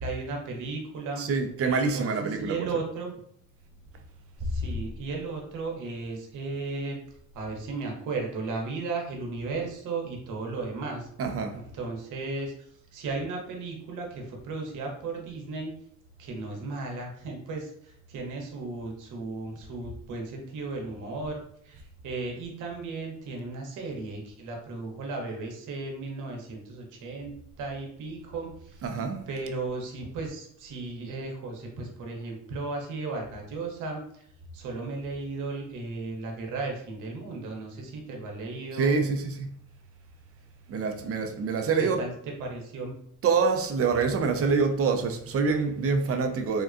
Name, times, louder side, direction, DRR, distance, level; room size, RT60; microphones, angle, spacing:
voice 1, 0.0-1.3 1.6-3.1 4.4-7.0 7.3-11.1 11.7-12.5 12.9-15.7 16.2-21.4 21.6-27.3 27.6-28.8 29.3-34.2 34.5-39.0 42.0-42.1 42.4-42.9, right 3 dB, 85° right, 0.8 m, -35 dB
voice 2, 1.2-2.7 11.2-11.6 28.8-29.2 38.8-39.5 40.7-42.0 43.2-46.6, right 5 dB, 50° right, 0.5 m, -26 dB
3.6 x 2.2 x 2.4 m
cardioid pair, 90°, 30 cm